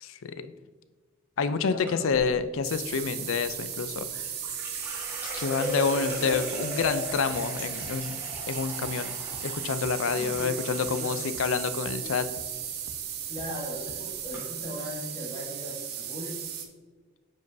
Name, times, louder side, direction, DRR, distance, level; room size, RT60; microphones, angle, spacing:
voice 1, 0.0-0.5 1.4-4.2 5.4-8.1 8.5-9.2 9.4-12.3, left 5 dB, 70° left, 11 dB, 0.4 m, -28 dB
voice 2, 1.7-2.2 5.3-6.1 10.1-10.5 10.9-11.2 13.3-16.4, left 1 dB, 25° left, -5 dB, 1.9 m, -38 dB
sound 1, 1.9-2.3 3.7-11.7 12.0-12.6 12.9-13.2 13.9-14.0 14.3-14.4, left 1 dB, 10° right, 1.4 m, -38 dB
sound 2, 2.6-16.7, right 9 dB, 45° right, 0.7 m, -36 dB
sound 3, 6.3-6.4 6.8-6.9 7.3-7.4 7.8-7.9 8.3-8.4 8.8-8.9 9.3-9.4 9.8-9.9 10.3-10.4 10.8-10.9 11.3-11.4 11.9-12.0 12.4-12.5 12.9-13.0 13.4-13.5 13.9-14.0, right 2 dB, 90° right, 0.7 m, -46 dB
9.1 x 5.3 x 2.7 m, 1.4 s
head